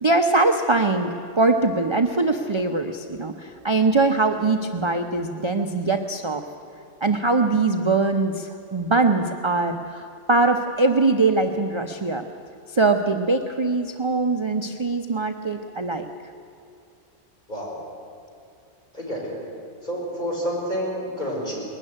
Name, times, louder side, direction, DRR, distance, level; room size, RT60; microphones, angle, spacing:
voice 1, 0.0-6.4 7.0-12.2 12.7-16.1, right 3 dB, 30° right, 5 dB, 0.7 m, -22 dB
voice 2, 17.5-17.8 18.9-19.4 19.8-21.6, equal, 40° left, -3 dB, 5.2 m, -29 dB
20.0 x 13.0 x 9.9 m, 2.5 s
omnidirectional pair, 1.2 m